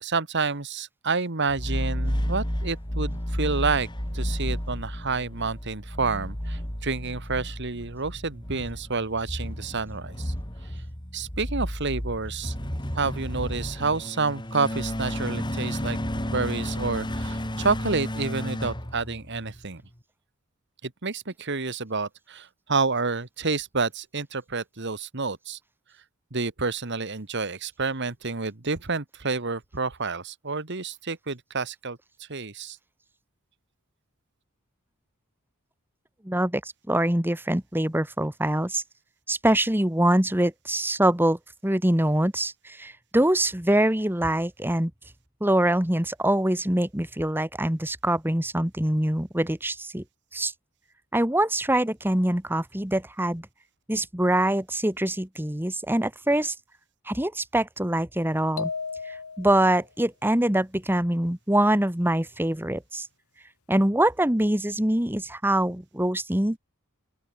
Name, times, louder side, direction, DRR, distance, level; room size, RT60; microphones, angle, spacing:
voice 1, 0.0-3.9 4.1-10.3 11.1-12.5 12.9-16.0 16.3-19.8 20.8-25.6 26.3-32.8, right 4 dB, 55° right, 1.6 m, -29 dB
sound 1, 1.5-19.6, equal, 20° left, 3.9 m, -32 dB
voice 2, 36.2-36.6 36.9-38.8 39.3-44.9 45.4-50.0 50.3-50.5 51.1-53.5 53.9-56.6 57.1-58.7 59.1-63.1 63.7-66.6, right 1 dB, 10° right, 1.6 m, -24 dB
sound 2, 58.6-59.8, left 5 dB, 85° left, 1.3 m, -34 dB
open air
head